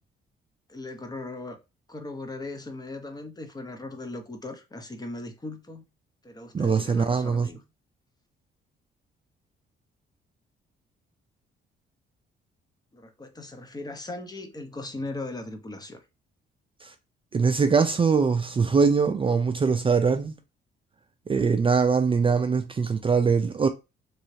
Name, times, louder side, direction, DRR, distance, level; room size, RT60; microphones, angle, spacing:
voice 1, 0.7-1.6 1.9-5.8 6.2-7.6 12.9-16.0, left 2 dB, 20° left, 0.7 m, -38 dB
voice 2, 6.5-7.5 16.8-16.9 17.3-20.4 21.3-23.7, right 5 dB, 25° right, 0.4 m, -22 dB
3.1 x 2.7 x 3.1 m
cardioid pair, 90°, 20 cm